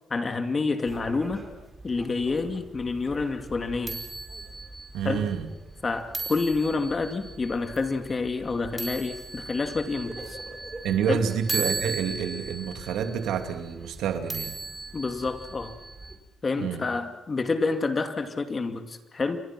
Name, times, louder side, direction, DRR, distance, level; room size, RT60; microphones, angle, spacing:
voice 1, 0.1-1.4 1.8-4.0 5.0-5.2 5.8-10.4 11.1-11.2 14.9-15.7 16.4-19.4, left 3 dB, 30° left, 7 dB, 2.5 m, -28 dB
sound 1, 0.8-16.2, right 3 dB, 20° right, 4.9 m, -38 dB
voice 2, 4.9-5.5 10.8-14.6 16.6-16.9, right 8 dB, 85° right, 7 dB, 2.6 m, -28 dB
29.0 x 23.5 x 6.1 m, 0.94 s
cardioid pair, 95°, 0 cm